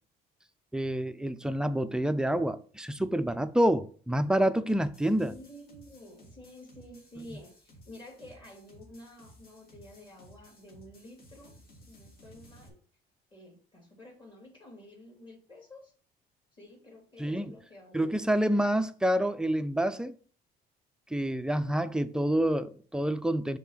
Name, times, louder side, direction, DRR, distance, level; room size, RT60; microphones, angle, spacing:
voice 1, 0.7-5.3 17.2-17.5 17.9-20.1 21.1-23.6, right 1 dB, 5° right, 0.5 m, -28 dB
sound 1, 4.7-12.7, equal, 60° left, 2.4 m, -56 dB
voice 2, 5.2-12.7 13.3-15.9 16.5-18.1, left 1 dB, 30° left, 3.1 m, -51 dB
5.9 x 3.7 x 5.8 m
cardioid pair, 110°, 17 cm